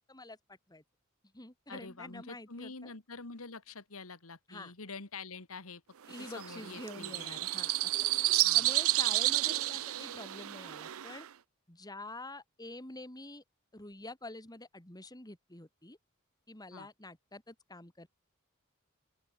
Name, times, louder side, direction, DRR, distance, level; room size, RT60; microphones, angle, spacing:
voice 1, 0.1-0.8 1.3-2.9 4.5-4.7 6.1-7.9 8.5-11.3 11.7-13.4 13.7-16.0 16.5-18.1, left 2 dB, 20° left, 2.7 m, -47 dB
voice 2, 1.7-5.8 6.2-7.4 8.4-8.7 16.7-16.9, left 4 dB, 80° left, 2.1 m, -46 dB
sound 1, 6.1-11.3, right 17 dB, 75° right, 0.6 m, -31 dB
open air
head